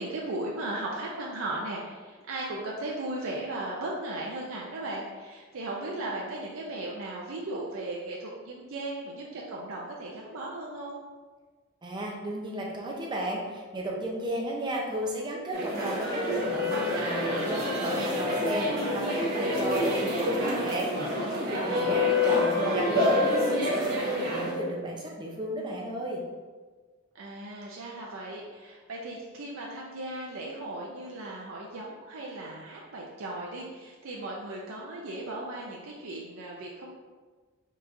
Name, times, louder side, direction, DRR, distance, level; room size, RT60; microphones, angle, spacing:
voice 1, 0.0-11.0 21.7-22.2 27.1-36.9, right 2 dB, 70° right, -3 dB, 0.5 m, -37 dB
voice 2, 11.8-20.9 21.2-26.2, right 1 dB, 20° right, -2 dB, 0.7 m, -33 dB
sound 1, 15.5-24.5, left 1 dB, 50° right, 1.3 m, -27 dB
4.6 x 4.0 x 2.6 m, 1.4 s
head